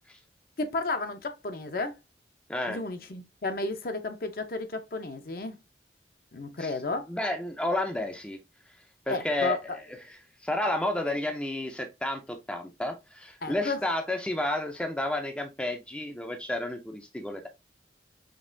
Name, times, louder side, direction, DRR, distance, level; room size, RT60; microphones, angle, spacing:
voice 1, 0.6-1.9 2.7-5.6 6.3-7.1 9.1-9.6 11.1-11.2 13.4-13.8, left 3 dB, 50° left, 0.6 m, -32 dB
voice 2, 7.1-8.4 9.1-9.8 10.4-17.5, left 1 dB, 5° left, 0.4 m, -31 dB
5.2 x 2.9 x 2.6 m
head